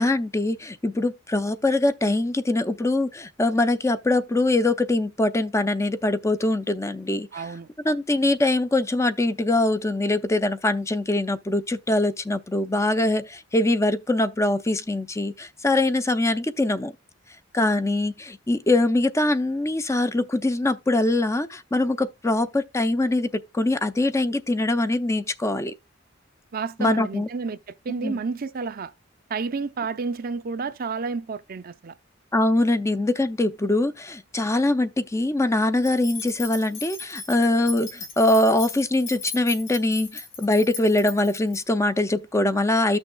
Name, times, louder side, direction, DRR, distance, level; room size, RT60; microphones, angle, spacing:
voice 1, 0.0-7.5 7.8-16.9 17.5-25.7 26.8-27.3 28.0-28.2 32.3-43.0, left 2 dB, 15° left, 0.4 m, -23 dB
voice 2, 7.3-7.7 26.5-27.6 27.8-28.9 29.3-31.9, right 4 dB, 50° right, 0.5 m, -30 dB
sound 1, 35.8-41.6, left 5 dB, 80° left, 2.5 m, -37 dB
13.0 x 6.2 x 2.2 m
head